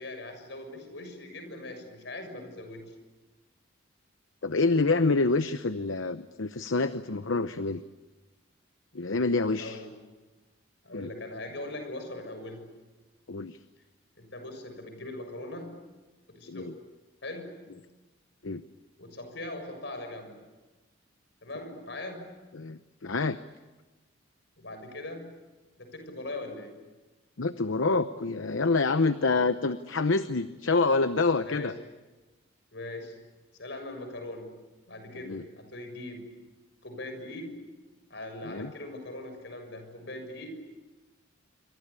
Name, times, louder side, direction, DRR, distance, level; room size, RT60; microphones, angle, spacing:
voice 1, 0.0-2.9 9.6-9.9 10.8-12.7 14.2-15.8 16.3-16.8 17.2-17.6 19.0-20.5 21.4-22.3 24.6-25.3 25.8-26.8 31.5-31.7 32.7-33.2 33.6-34.6 34.9-36.3 36.8-37.6 38.1-40.5, left 2 dB, 60° left, 7 dB, 6.7 m, -40 dB
voice 2, 4.4-7.8 8.9-9.8 10.9-11.1 13.3-13.6 16.5-16.7 18.4-18.6 22.5-23.4 27.4-31.7 35.1-35.4 38.4-38.7, left 3 dB, 80° left, 11 dB, 0.9 m, -27 dB
27.5 x 25.5 x 8.4 m, 1.2 s
head